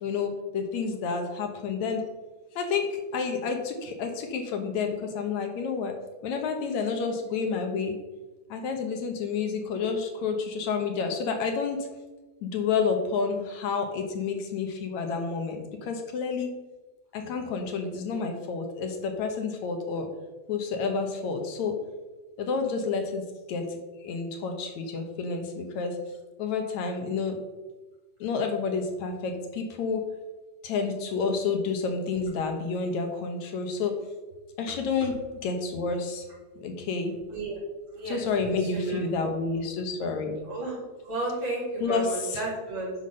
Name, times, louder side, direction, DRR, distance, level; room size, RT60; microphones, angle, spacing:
voice 1, 0.0-2.0 2.6-6.0 6.2-7.9 8.5-11.9 12.4-16.5 17.1-20.1 20.5-21.8 22.4-23.2 23.5-26.0 26.4-27.4 28.2-30.0 30.6-33.9 34.6-36.3 36.6-37.1 38.1-40.3 41.8-42.4, left 5 dB, 75° left, 4 dB, 2.5 m, -29 dB
voice 2, 38.7-39.0 40.5-40.8 41.0-42.9, right 2 dB, 40° right, -5 dB, 4.0 m, -32 dB
9.7 x 6.0 x 6.5 m, 1.2 s
omnidirectional pair, 3.3 m